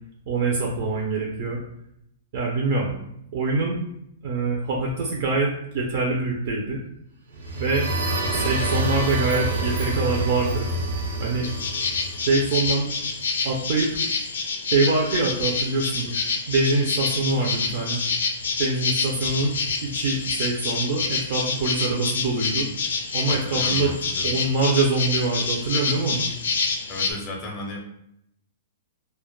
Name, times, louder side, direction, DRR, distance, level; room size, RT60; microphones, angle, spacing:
voice 1, 0.3-1.6 2.3-2.9 3.3-3.8 4.2-6.8 7.6-7.9 8.3-10.6 11.2-11.5 12.3-12.9 13.4-13.9 14.7-16.2 16.5-18.0 18.6-19.5 19.8-22.7 23.1-23.9 24.2-26.3, right 3 dB, 40° right, -2 dB, 0.4 m, -24 dB
sound 1, 7.3-13.1, right 1 dB, 75° right, 0.7 m, -27 dB
sound 2, 11.4-27.1, left 4 dB, 80° left, 0.4 m, -27 dB
voice 2, 23.4-24.3 26.9-27.8, left 2 dB, 20° left, -1 dB, 0.5 m, -34 dB
2.1 x 2.0 x 2.9 m, 0.75 s
hypercardioid pair, 175°, 0 cm